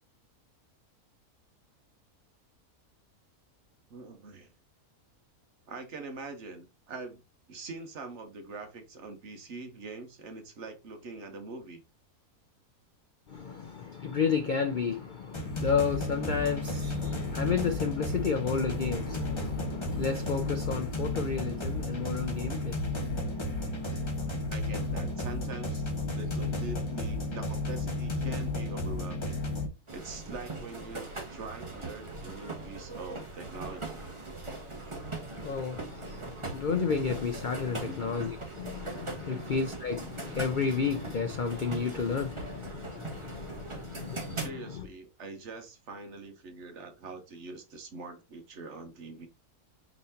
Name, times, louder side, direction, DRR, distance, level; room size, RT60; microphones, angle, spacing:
voice 1, 3.9-4.5 5.7-7.2 7.5-11.8 24.5-29.4 29.9-34.1 37.9-38.1 39.2-39.5 44.3-49.3, right 3 dB, 55° right, 1.1 m, -43 dB
voice 2, 13.3-24.5 35.1-44.9, left 6 dB, 85° left, 0.4 m, -32 dB
sound 1, 15.3-29.7, left 2 dB, 25° left, 0.8 m, -33 dB
sound 2, 29.9-44.5, right 3 dB, 20° right, 1.0 m, -40 dB
4.9 x 4.0 x 2.7 m
omnidirectional pair, 1.6 m